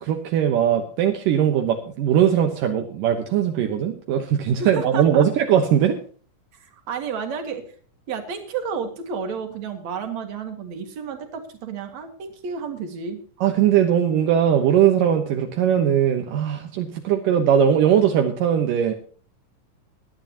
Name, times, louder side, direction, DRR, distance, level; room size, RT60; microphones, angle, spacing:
voice 1, 0.0-6.0 13.4-18.9, right 9 dB, 75° right, 4 dB, 2.7 m, -20 dB
voice 2, 4.6-5.2 6.5-7.7 8.1-13.2, right 6 dB, 55° right, 6 dB, 3.1 m, -31 dB
20.0 x 11.5 x 2.9 m, 0.43 s
omnidirectional pair, 4.0 m